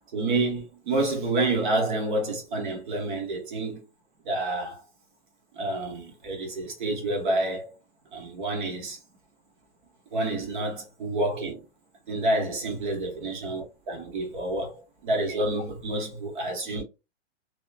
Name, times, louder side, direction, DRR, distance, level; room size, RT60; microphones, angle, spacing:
voice 1, 0.1-3.8 4.2-4.8 5.6-7.7 8.1-9.0 10.1-11.6 12.1-16.8, right 2 dB, 45° right, 1.1 m, -28 dB
2.9 x 2.2 x 2.4 m
hypercardioid pair, 170°, 35 cm